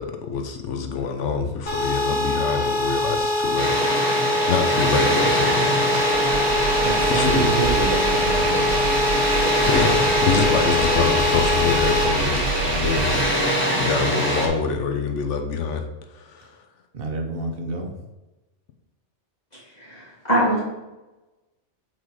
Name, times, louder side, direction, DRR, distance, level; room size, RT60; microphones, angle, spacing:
voice 1, 0.0-5.9 6.5-7.5 9.7-13.2 13.8-15.8 16.1-16.5, left 5 dB, 85° left, 6 dB, 1.1 m, -26 dB
sound 1, 1.7-12.0, left 2 dB, 55° left, 1.9 m, -23 dB
Water, 3.6-14.5, equal, 10° left, 1.6 m, -24 dB
Engine, 5.9-13.7, right 5 dB, 90° right, 1.4 m, -28 dB
voice 2, 6.8-8.8 10.6-10.7 16.9-17.9, right 3 dB, 55° right, 3 dB, 1.2 m, -27 dB
voice 3, 19.8-20.6, equal, 35° left, -7 dB, 2.1 m, -22 dB
7.9 x 3.9 x 4.7 m, 1.1 s
omnidirectional pair, 1.2 m